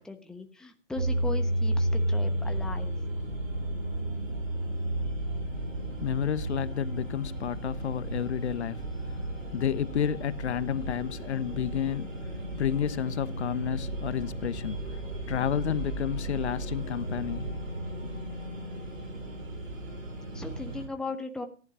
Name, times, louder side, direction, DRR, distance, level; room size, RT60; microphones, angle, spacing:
voice 1, 0.0-2.9 20.0-21.5, left 3 dB, ahead, 1.1 m, -38 dB
sound 1, 1.0-20.9, right 1 dB, 80° right, 6.2 m, -33 dB
voice 2, 6.0-15.0 15.3-17.5 18.0-18.1, left 9 dB, 60° left, 1.1 m, -31 dB
14.5 x 11.0 x 6.2 m
hypercardioid pair, 140°, 38 cm